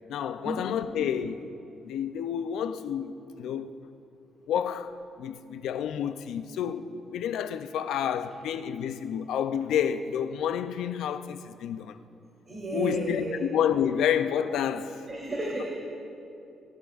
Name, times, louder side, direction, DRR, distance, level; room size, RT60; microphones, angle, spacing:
voice 1, 0.1-1.4 1.9-3.7 4.5-12.0 12.7-15.0, left 9 dB, 80° left, 0.5 m, -29 dB
voice 2, 0.9-1.2 12.4-13.4 15.1-15.6, right 1 dB, 30° right, 3.3 m, -33 dB
21.5 x 11.5 x 2.5 m
cardioid pair, 90°, 0 cm